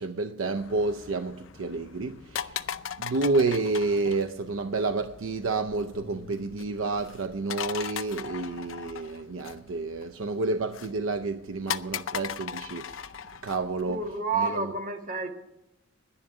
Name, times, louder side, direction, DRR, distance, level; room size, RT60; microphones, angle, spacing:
voice 1, 0.0-13.1 13.4-14.0 14.4-14.7, right 3 dB, 80° right, 0.6 m, -30 dB
sound 1, 0.5-14.2, left 8 dB, 80° left, 0.6 m, -39 dB
sound 2, 5.9-12.2, left 2 dB, 40° left, 3.3 m, -55 dB
voice 2, 13.9-15.3, right 4 dB, 45° right, 1.7 m, -29 dB
11.0 x 10.5 x 7.8 m
head